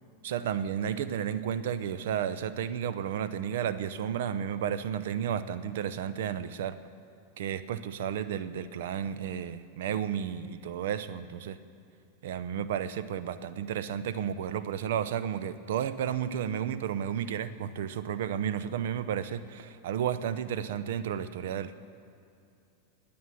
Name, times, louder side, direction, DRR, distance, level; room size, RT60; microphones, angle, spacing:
voice 1, 0.2-6.8 7.4-11.6 12.2-21.7, right 9 dB, 55° right, 15 dB, 0.7 m, -32 dB
21.5 x 8.7 x 7.5 m, 2.6 s
figure-of-eight pair, 90°, 0 cm